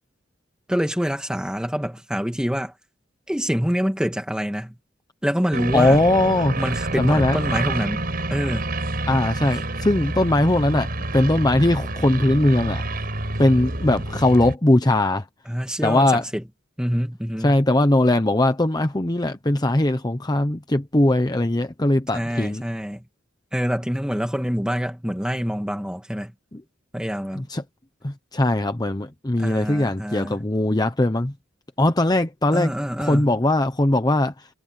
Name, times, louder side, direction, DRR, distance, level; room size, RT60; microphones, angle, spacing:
voice 1, 0.7-2.7 3.3-4.8 5.2-6.0 6.6-8.7 15.5-16.4 16.8-17.6 22.1-23.0 23.5-26.3 26.9-27.5 29.4-30.4 32.5-33.3, equal, 5° right, 2.1 m, -26 dB
sound 1, 5.5-14.6, right 2 dB, 50° right, 5.2 m, -28 dB
voice 2, 5.7-6.6 7.0-7.4 9.1-12.8 13.4-15.3 15.8-16.2 17.4-22.6 26.5-26.6 27.3-27.6 28.0-31.3 31.8-32.7 33.0-34.5, left 1 dB, 20° left, 0.9 m, -20 dB
head